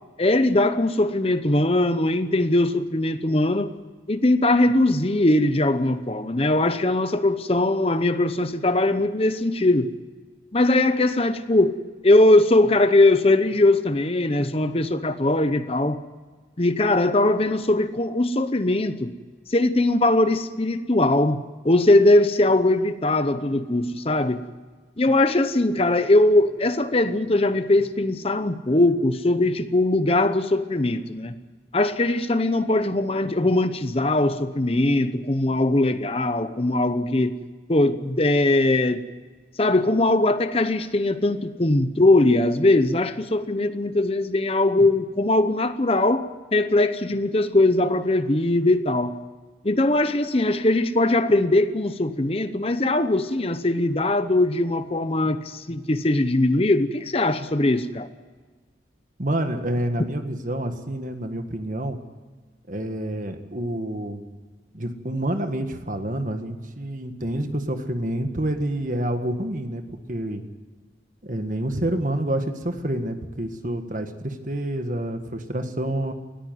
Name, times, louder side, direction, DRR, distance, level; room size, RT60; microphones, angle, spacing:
voice 1, 0.2-3.7 4.1-9.9 10.5-11.7 12.0-16.0 16.6-19.1 19.5-24.4 25.0-31.4 31.7-37.4 37.7-39.0 39.6-49.2 49.6-58.1, left 2 dB, 35° left, 11 dB, 0.8 m, -20 dB
voice 2, 59.2-62.0 62.7-64.2 64.7-70.4 71.2-76.1, right 1 dB, 45° right, 7 dB, 1.7 m, -28 dB
19.5 x 14.5 x 9.5 m, 1.4 s
head